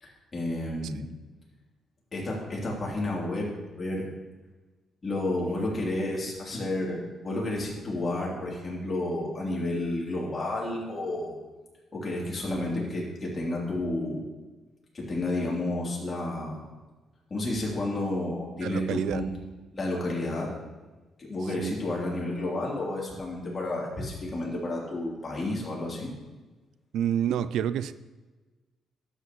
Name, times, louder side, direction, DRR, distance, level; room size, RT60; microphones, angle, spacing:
voice 1, 0.0-1.0 2.1-3.5 3.8-4.1 5.0-11.4 11.9-14.2 14.9-16.7 17.3-19.3 19.7-20.5 21.2-26.1, left 1 dB, 35° left, -4 dB, 3.2 m, -31 dB
voice 2, 18.6-19.2 21.4-21.8 26.9-27.9, right 9 dB, 80° right, 15 dB, 0.3 m, -29 dB
11.5 x 8.3 x 3.1 m, 1.2 s
cardioid pair, 90°, 0 cm